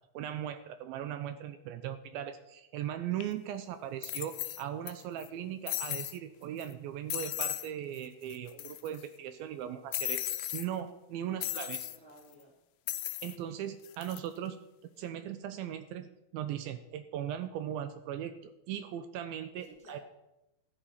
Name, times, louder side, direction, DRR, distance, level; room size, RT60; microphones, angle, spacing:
voice 1, 0.1-11.9 13.2-14.6 14.8-20.0, right 10 dB, 80° right, 10 dB, 2.4 m, -39 dB
sound 1, 3.2-3.3 4.0-4.9 5.2-5.3 5.7-6.2 6.6-6.7 7.1-7.7 8.0-8.1 8.3-9.0 9.9-10.7 11.4-12.0 12.9-13.4 13.8-14.2, left 15 dB, 85° left, 1.9 m, -36 dB
voice 2, 11.3-12.6 19.6-20.0, equal, ahead, -3 dB, 2.7 m, -56 dB
14.0 x 9.0 x 5.7 m, 0.92 s
omnidirectional pair, 4.4 m